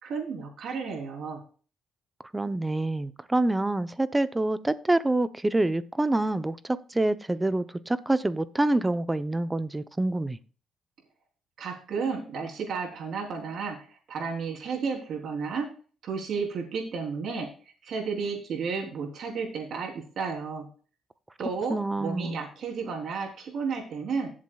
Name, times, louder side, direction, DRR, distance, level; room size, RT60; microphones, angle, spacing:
voice 1, 0.0-1.4 11.6-15.7 16.0-17.5 17.8-20.7 21.4-24.3, right 5 dB, 65° right, 3.4 m, -32 dB
voice 2, 2.3-10.4 21.7-22.4, right 2 dB, 15° right, 0.7 m, -26 dB
16.5 x 7.5 x 2.3 m
cardioid pair, 90°, 0 cm